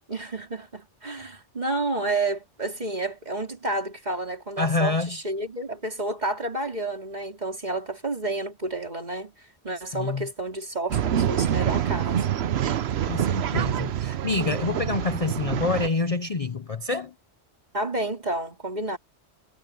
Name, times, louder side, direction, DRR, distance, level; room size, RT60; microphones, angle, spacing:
voice 1, 0.1-12.4 17.7-19.0, right 2 dB, 35° right, 3.6 m, -30 dB
voice 2, 4.6-5.1 9.9-10.3 13.1-17.1, left 3 dB, 35° left, 0.7 m, -27 dB
Male speech man speaking / Chatter / Rattle, 10.9-15.9, right 10 dB, 65° right, 0.9 m, -26 dB
omnidirectional pair, 1.2 m